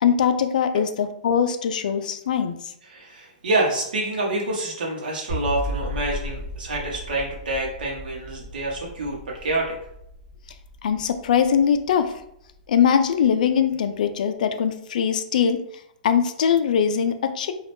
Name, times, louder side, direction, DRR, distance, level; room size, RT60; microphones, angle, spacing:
voice 1, 0.0-2.7 10.8-12.1 12.7-15.6 16.0-17.5, left 7 dB, 65° left, 8 dB, 0.4 m, -21 dB
voice 2, 2.9-9.7, right 2 dB, 80° right, -3 dB, 0.8 m, -27 dB
sound 1, 5.3-12.5, equal, 25° right, 1.3 m, -35 dB
2.5 x 2.3 x 3.4 m, 0.76 s
hypercardioid pair, 165°, 5 cm